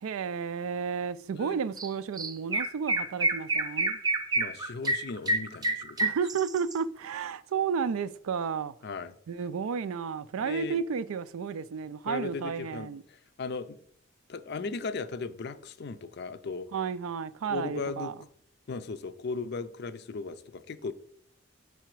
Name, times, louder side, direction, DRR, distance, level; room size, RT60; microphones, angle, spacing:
voice 1, 0.0-4.0 6.0-8.7 9.3-13.0 16.7-18.1, right 6 dB, 80° right, 0.4 m, -32 dB
Chirp tweet, 1.8-1.9 2.2-6.7, right 2 dB, 20° right, 0.4 m, -28 dB
voice 2, 4.3-6.1 8.8-9.1 10.4-10.8 12.1-13.8 14.3-16.7 17.4-18.1 18.7-20.9, left 4 dB, 50° left, 0.4 m, -37 dB
5.6 x 4.9 x 4.5 m
head